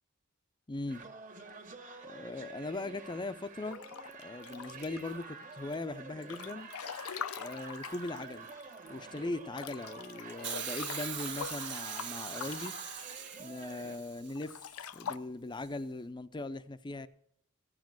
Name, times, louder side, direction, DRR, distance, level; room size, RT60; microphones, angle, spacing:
voice 1, 0.7-1.0 2.0-3.8 4.2-6.7 7.4-8.5 8.9-12.8 13.4-17.1, left 2 dB, 20° left, 0.5 m, -40 dB
sound 1, 0.9-14.0, right 4 dB, 40° right, 1.4 m, -48 dB
Breathing / Bathtub (filling or washing) / Splash splatter, 3.7-5.2 5.7-8.9 9.2-9.3 9.5-13.7 14.3-15.2, left 8 dB, 80° left, 0.5 m, -44 dB
Hiss, 10.4-14.6 15.6-15.7, right 9 dB, 55° right, 1.4 m, -41 dB
14.5 x 7.3 x 7.6 m
head